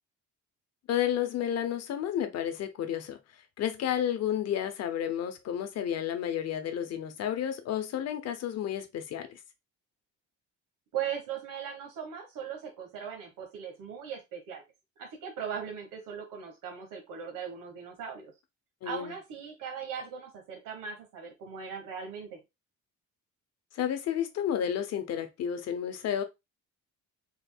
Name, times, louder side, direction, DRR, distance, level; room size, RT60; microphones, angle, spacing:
voice 1, 0.9-3.2 3.6-9.4 18.8-19.2 23.7-26.2, left 10 dB, 55° left, 0.7 m, -31 dB
voice 2, 10.9-14.6 15.0-18.3 18.8-22.4, right 7 dB, 90° right, 1.3 m, -39 dB
4.3 x 3.8 x 2.3 m
cardioid pair, 175°, 32 cm